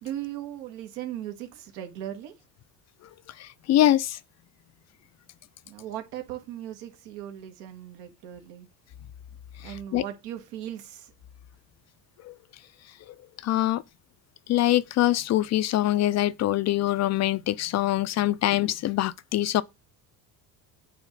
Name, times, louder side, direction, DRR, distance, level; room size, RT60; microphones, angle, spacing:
voice 1, 0.0-2.3 5.6-8.7 9.6-11.1, right 11 dB, 85° right, 1.6 m, -38 dB
voice 2, 3.4-4.2 9.6-10.0 12.2-12.3 13.1-13.2 13.4-13.8 14.5-19.6, left 14 dB, 40° left, 0.4 m, -24 dB
8.3 x 3.2 x 5.2 m
cardioid pair, 105°, 42 cm